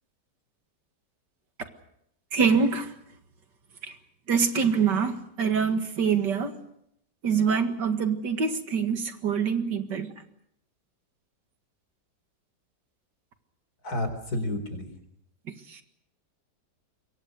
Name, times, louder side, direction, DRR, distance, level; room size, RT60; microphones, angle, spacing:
voice 1, 2.3-2.9 3.8-4.0 4.3-6.5 7.2-10.1 15.5-15.8, right 6 dB, 85° right, 7 dB, 2.5 m, -25 dB
voice 2, 13.8-14.9, left 1 dB, 60° left, 8 dB, 4.6 m, -30 dB
26.0 x 22.5 x 6.6 m, 0.76 s
omnidirectional pair, 1.8 m